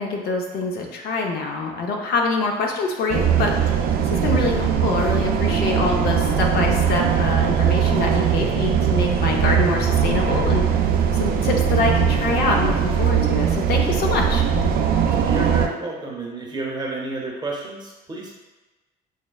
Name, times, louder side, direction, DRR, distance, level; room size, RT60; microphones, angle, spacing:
voice 1, 0.0-3.5 4.0-10.6 11.1-14.4, left 3 dB, 70° left, 1 dB, 0.7 m, -25 dB
sound 1, 3.1-15.7, right 7 dB, 65° right, 0.4 m, -20 dB
voice 2, 15.2-18.4, right 2 dB, 25° right, -2 dB, 0.7 m, -31 dB
6.3 x 2.1 x 2.3 m, 1.2 s
cardioid pair, 110°, 17 cm